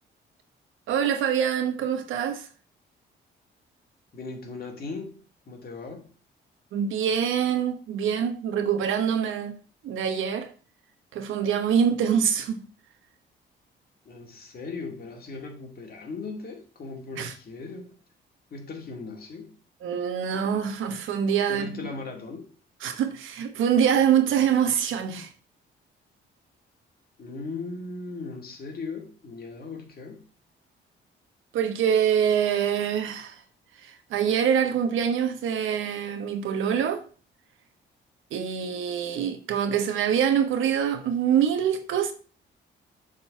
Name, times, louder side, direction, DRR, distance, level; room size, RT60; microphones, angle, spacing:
voice 1, 0.9-2.5 6.7-9.6 9.8-10.5 11.1-12.6 17.2-17.3 19.8-21.8 22.8-25.3 31.5-33.4 33.8-37.0 38.3-42.1, right 8 dB, 80° right, 1.1 m, -25 dB
voice 2, 4.1-5.2 5.5-6.1 14.1-17.9 18.5-19.5 21.5-22.5 27.2-30.2, left 4 dB, 50° left, 2.2 m, -38 dB
7.3 x 4.0 x 5.7 m
cardioid pair, 90°, 20 cm